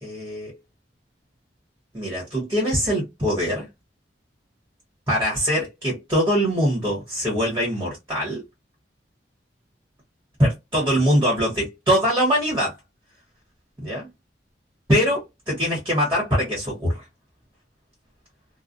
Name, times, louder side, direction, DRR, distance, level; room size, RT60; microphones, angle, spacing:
voice 1, 0.0-0.6 1.9-3.7 5.1-8.4 10.4-12.7 13.8-14.1 14.9-17.0, equal, 15° right, 1.1 m, -23 dB
2.3 x 2.2 x 2.5 m
head